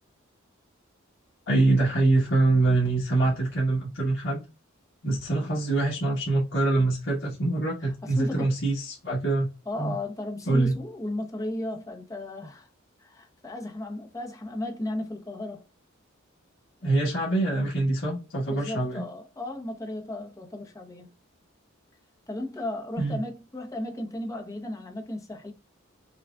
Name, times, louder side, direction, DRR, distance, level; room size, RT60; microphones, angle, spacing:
voice 1, 1.5-4.4 5.0-9.5 9.8-9.9 10.5-10.8 16.8-19.0 23.0-23.2, right 2 dB, 65° left, 1.3 m, -24 dB
voice 2, 8.0-8.5 9.7-12.7 13.0-15.7 18.5-21.1 22.3-25.5, left 1 dB, 15° left, 0.8 m, -35 dB
5.8 x 2.4 x 2.3 m
head